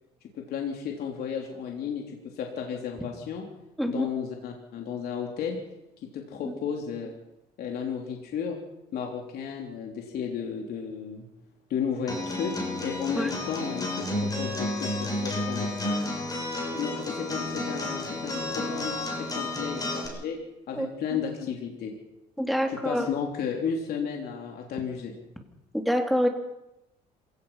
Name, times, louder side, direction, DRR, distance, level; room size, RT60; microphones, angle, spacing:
voice 1, 0.3-3.4 3.9-5.6 6.0-7.1 7.6-8.6 8.9-11.3 11.7-12.5 12.8-16.1 16.7-20.4 20.7-21.9 22.7-25.1, left 7 dB, 65° left, 1 dB, 3.5 m, -33 dB
Acoustic guitar, 12.1-20.1, left 1 dB, 20° left, 7.1 m, -31 dB
voice 2, 20.8-21.2 22.4-23.1 25.7-26.3, equal, ahead, 3 dB, 3.2 m, -26 dB
27.0 x 17.5 x 5.8 m, 0.90 s
cardioid pair, 110°, 17 cm